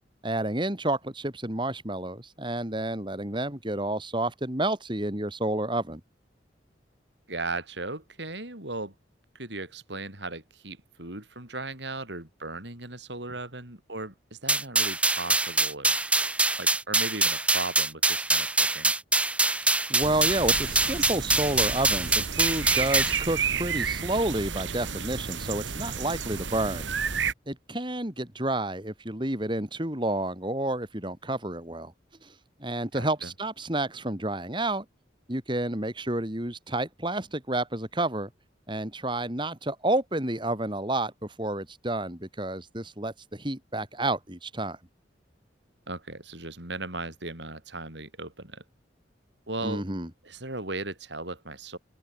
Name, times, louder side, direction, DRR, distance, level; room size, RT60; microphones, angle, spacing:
voice 1, 0.2-6.0 19.9-26.9 27.5-31.9 32.2-32.3 32.6-34.8 35.3-38.3 38.7-44.8 49.6-50.1, right 1 dB, 25° right, 3.4 m, -30 dB
voice 2, 7.3-8.9 9.3-15.9 16.6-18.9 32.9-33.3 45.9-48.6 49.5-49.8 50.2-51.8, right 2 dB, 75° right, 7.2 m, -37 dB
sound 1, 14.5-23.2, right 2 dB, 5° right, 0.4 m, -24 dB
sound 2, 20.0-27.3, right 6 dB, 90° right, 2.2 m, -31 dB
open air
head